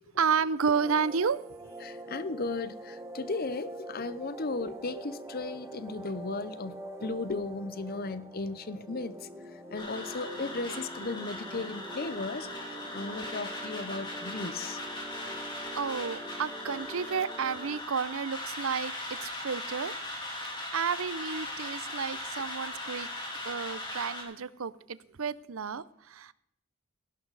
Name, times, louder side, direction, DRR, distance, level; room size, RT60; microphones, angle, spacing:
voice 1, 0.1-1.7 15.7-19.9 20.7-23.1 23.4-26.3, right 6 dB, 75° right, 0.6 m, -31 dB
sound 1, 0.7-17.8, right 1 dB, 15° right, 1.1 m, -45 dB
voice 2, 1.8-14.8, left 3 dB, 45° left, 0.7 m, -36 dB
sound 2, 9.8-24.2, left 1 dB, 20° left, 3.2 m, -39 dB
16.5 x 12.5 x 4.0 m
head